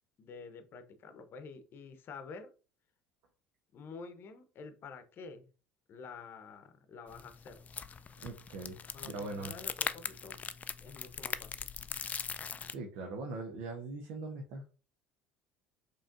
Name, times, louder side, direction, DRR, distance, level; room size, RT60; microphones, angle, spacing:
voice 1, 0.2-2.5 3.7-5.5 5.9-7.6 8.9-10.4 10.8-11.6, left 4 dB, 50° left, 10 dB, 0.8 m, -49 dB
sound 1, 7.1-12.7, left 6 dB, 30° left, 0.3 m, -41 dB
voice 2, 8.2-8.8 9.0-9.5 12.7-14.7, right 3 dB, 65° right, 2 dB, 0.7 m, -41 dB
5.0 x 3.1 x 2.5 m, 0.34 s
hypercardioid pair, 75°, 5 cm